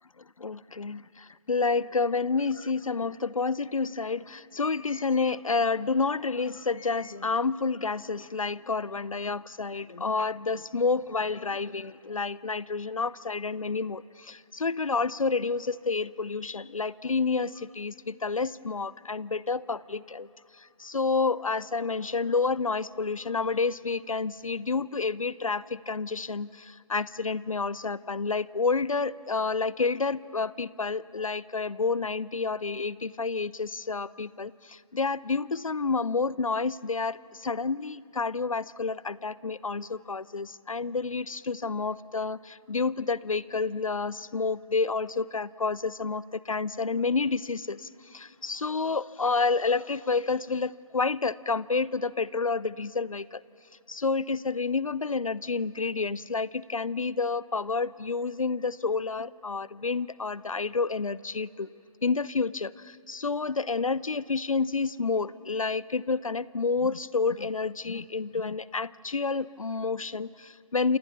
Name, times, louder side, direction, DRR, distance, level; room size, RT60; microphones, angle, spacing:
voice 1, 0.4-20.3 20.6-53.4 53.9-61.7 62.0-71.0, left 4 dB, 70° left, 20 dB, 0.7 m, -29 dB
28.5 x 27.5 x 7.1 m, 2.8 s
figure-of-eight pair, 140°, 18 cm